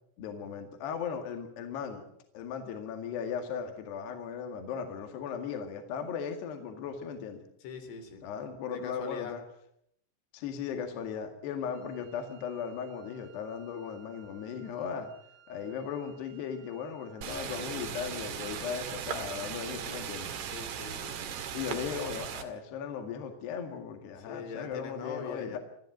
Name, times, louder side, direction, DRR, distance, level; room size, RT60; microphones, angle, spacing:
voice 1, 0.2-2.0 2.3-7.4 8.2-9.4 10.3-15.1 15.5-20.3 21.5-25.6, left 7 dB, 65° left, 5 dB, 3.9 m, -37 dB
voice 2, 7.6-8.2 8.7-9.3 20.5-21.2 24.3-25.6, left 6 dB, 80° left, 6 dB, 5.7 m, -41 dB
Wind instrument woodwind instrument, 11.7-18.0, right 10 dB, 85° right, 9.3 m, -60 dB
sound 1, 17.2-22.4, right 8 dB, 60° right, 3.7 m, -38 dB
24.5 x 14.5 x 9.1 m, 0.73 s
omnidirectional pair, 5.6 m